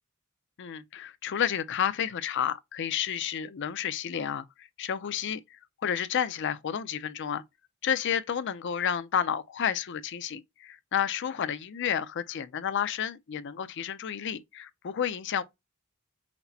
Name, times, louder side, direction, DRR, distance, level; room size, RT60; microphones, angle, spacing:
voice 1, 0.6-5.4 5.8-7.4 7.8-15.4, left 8 dB, 60° left, 0.5 m, -31 dB
5.8 x 2.1 x 2.7 m
head